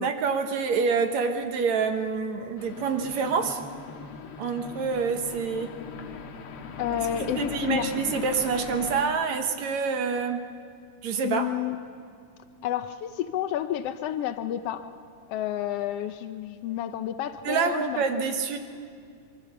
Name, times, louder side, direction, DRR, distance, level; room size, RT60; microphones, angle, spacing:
voice 1, 0.0-3.6 4.4-5.7 7.1-10.4 11.0-11.5 17.5-18.6, right 5 dB, 65° right, 6 dB, 2.3 m, -27 dB
sound 1, 2.6-9.0, left 5 dB, 55° left, 1.7 m, -39 dB
voice 2, 6.8-7.9 11.2-11.8 12.6-14.9 15.3-18.2, left 11 dB, 90° left, 9 dB, 1.3 m, -30 dB
25.5 x 24.0 x 6.9 m, 2.3 s
omnidirectional pair, 3.7 m